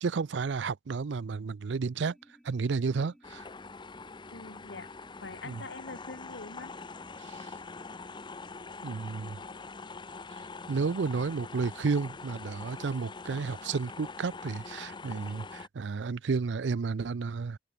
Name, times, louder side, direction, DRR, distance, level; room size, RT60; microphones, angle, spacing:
voice 1, 0.0-2.1 2.4-3.4 5.4-5.6 7.2-7.5 8.8-9.4 10.7-17.6, right 4 dB, 70° right, 0.5 m, -32 dB
sound 1, 2.0-8.5, equal, ahead, 3.6 m, -60 dB
sound 2, 3.2-15.7, left 4 dB, 25° left, 0.7 m, -44 dB
voice 2, 4.3-4.9 5.2-6.7, left 3 dB, 75° left, 1.7 m, -44 dB
open air
head